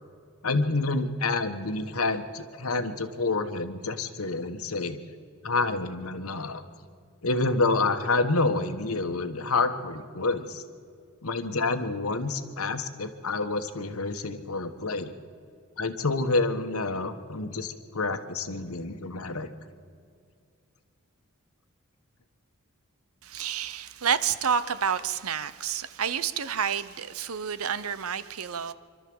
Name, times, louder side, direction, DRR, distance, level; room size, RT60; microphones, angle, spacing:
voice 1, 0.4-5.0 5.4-6.6 7.2-10.6 11.2-15.1 15.8-19.5, left 3 dB, 75° left, 9 dB, 1.3 m, -28 dB
voice 2, 23.2-28.7, right 7 dB, 75° right, 15 dB, 0.8 m, -29 dB
26.0 x 12.5 x 7.9 m, 2.2 s
head